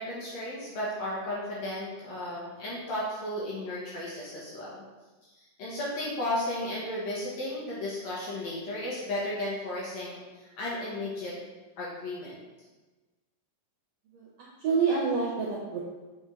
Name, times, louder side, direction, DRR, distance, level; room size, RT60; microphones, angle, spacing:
voice 1, 0.0-4.8 5.2-11.4 11.8-12.4, left 1 dB, 65° left, -6 dB, 2.3 m, -34 dB
voice 2, 14.1-15.8, right 5 dB, 70° right, -4 dB, 1.7 m, -28 dB
7.0 x 4.5 x 3.7 m, 1.2 s
omnidirectional pair, 3.8 m